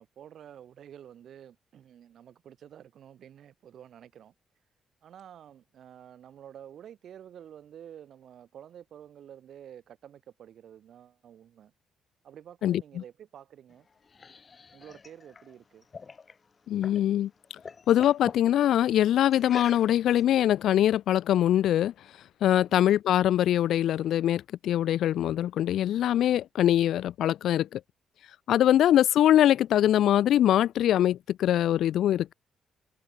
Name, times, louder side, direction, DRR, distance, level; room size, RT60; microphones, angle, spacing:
voice 1, 0.0-4.3 5.0-11.7 12.2-13.9 14.7-15.9 22.7-22.9 28.6-28.8, right 9 dB, 65° right, 6.0 m, -50 dB
sound 1, 13.7-17.1 17.4-18.5 19.3-20.2, left 5 dB, 35° left, 5.2 m, -45 dB
voice 2, 16.7-17.3 17.9-21.9 22.4-27.8 28.5-32.3, left 11 dB, 75° left, 0.4 m, -23 dB
open air
cardioid pair, 90°, 0 cm